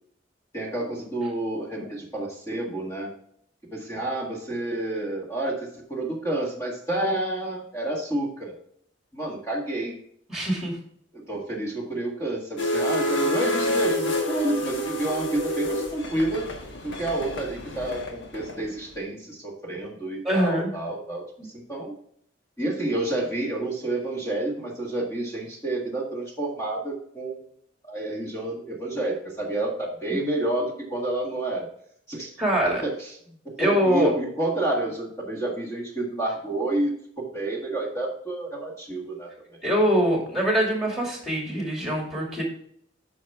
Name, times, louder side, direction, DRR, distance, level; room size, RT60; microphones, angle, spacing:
voice 1, 0.5-3.1 3.7-8.6 9.1-9.9 11.1-16.5 16.8-21.9 22.6-27.5 27.8-31.7 32.1-32.3 32.8-33.2 33.4-36.9 37.2-39.3, right 1 dB, 15° left, -2 dB, 1.7 m, -29 dB
voice 2, 10.3-10.8 20.2-20.7 21.4-21.5 32.4-32.8 33.6-34.1 39.6-42.4, equal, ahead, 0 dB, 2.5 m, -23 dB
sound 1, 12.6-18.9, left 1 dB, 80° left, 1.4 m, -28 dB
9.1 x 5.7 x 3.6 m, 0.65 s
head